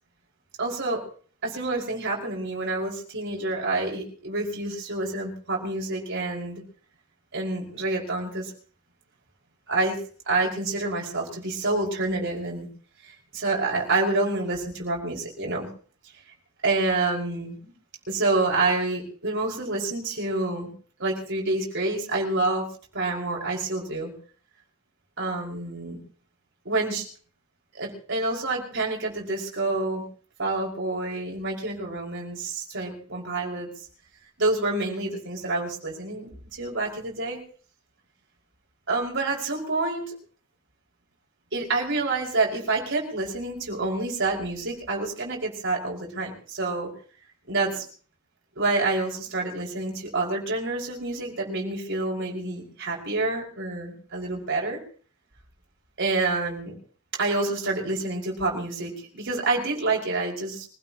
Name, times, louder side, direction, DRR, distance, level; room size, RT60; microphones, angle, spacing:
voice 1, 0.6-1.0 1.4-6.6 7.3-8.5 9.7-10.0 10.3-12.7 13.0-15.7 16.6-17.7 18.1-20.7 21.0-22.7 22.9-24.1 25.2-26.0 26.6-27.0 27.7-30.0 30.4-33.7 34.4-37.4 38.9-40.1 41.5-46.9 47.5-47.9 48.6-54.8 56.0-56.7 57.2-60.7, right 2 dB, 55° right, -1 dB, 5.7 m, -28 dB
25.5 x 16.5 x 3.0 m, 0.42 s
head